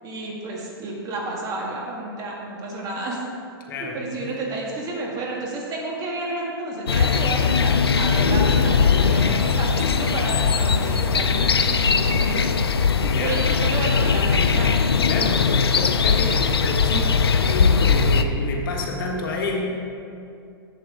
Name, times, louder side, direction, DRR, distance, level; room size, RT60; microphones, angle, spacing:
voice 1, 0.0-3.2 3.8-12.6 13.2-14.7, right 2 dB, 30° right, -2 dB, 1.8 m, -31 dB
voice 2, 3.7-4.4 13.0-13.5 15.1-19.7, left 2 dB, 60° left, 0 dB, 1.5 m, -30 dB
sound 1, 6.9-18.2, left 5 dB, 90° left, 0.5 m, -20 dB
7.7 x 7.6 x 5.0 m, 2.6 s
hypercardioid pair, 125°, 13 cm